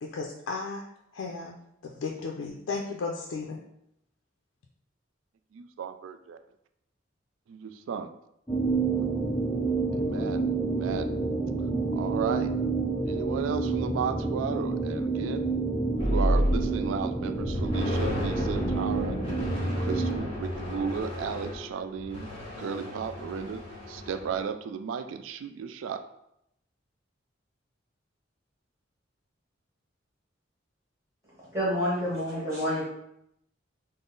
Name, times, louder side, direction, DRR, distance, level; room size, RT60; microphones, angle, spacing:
voice 1, 0.0-0.8 1.1-1.5 1.8-3.6, left 4 dB, 90° left, -1 dB, 0.4 m, -34 dB
voice 2, 5.5-6.4 7.9-8.1 9.0-9.1 9.9-11.1 11.9-12.6 13.0-15.5 16.0-19.2 19.8-26.1, right 6 dB, 85° right, 10 dB, 0.3 m, -34 dB
sound 1, 8.5-20.2, right 3 dB, 5° left, 0.5 m, -29 dB
sound 2, 16.0-17.0 17.4-24.4, equal, 30° left, 1.2 m, -31 dB
voice 3, 31.5-32.9, equal, 15° right, -9 dB, 1.3 m, -28 dB
3.7 x 2.0 x 3.8 m, 0.78 s
head